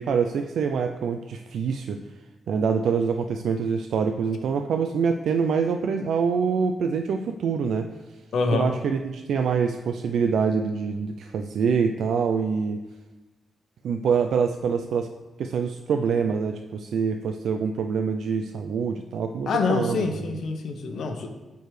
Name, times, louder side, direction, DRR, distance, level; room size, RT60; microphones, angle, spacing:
voice 1, 0.0-2.0 2.5-7.9 8.5-12.8 13.8-15.1 15.4-20.3, right 6 dB, 75° right, 6 dB, 0.4 m, -25 dB
voice 2, 8.3-8.7 19.5-21.3, left 4 dB, 65° left, 5 dB, 0.9 m, -25 dB
14.0 x 4.6 x 3.2 m, 1.1 s
wide cardioid pair, 160°, 0 cm